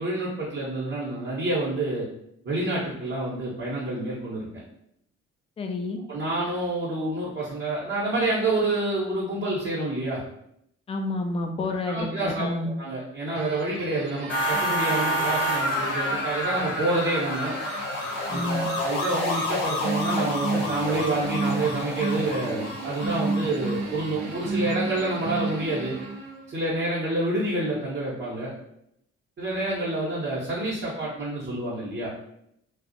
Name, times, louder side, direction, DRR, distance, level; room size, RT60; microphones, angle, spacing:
voice 1, 0.0-2.1 2.4-4.5 6.1-10.2 11.9-17.5 18.3-26.0 26.5-28.5 29.4-32.1, right 2 dB, 35° right, -7 dB, 0.7 m, -28 dB
voice 2, 5.6-6.0 10.9-12.7 18.3-18.7, left 2 dB, 20° left, 5 dB, 0.3 m, -29 dB
sound 1, 13.4-26.5, right 3 dB, 65° right, 0.5 m, -33 dB
sound 2, 14.3-18.8, equal, 35° left, 0.8 m, -28 dB
sound 3, 16.1-25.4, left 3 dB, 75° left, 0.7 m, -33 dB
2.4 x 2.0 x 2.6 m, 0.76 s
figure-of-eight pair, 40°, 35 cm